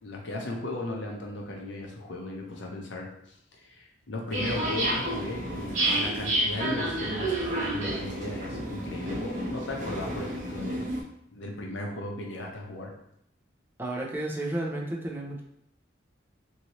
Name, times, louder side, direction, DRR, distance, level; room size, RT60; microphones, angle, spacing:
voice 1, 0.0-3.1 3.5-10.9 11.3-12.9, left 1 dB, 70° left, 0 dB, 0.7 m, -36 dB
sound 1, 4.3-11.0, right 1 dB, 40° right, 0.8 m, -30 dB
voice 2, 13.8-15.4, right 1 dB, 10° right, -2 dB, 0.5 m, -32 dB
2.9 x 2.7 x 3.0 m, 0.75 s
head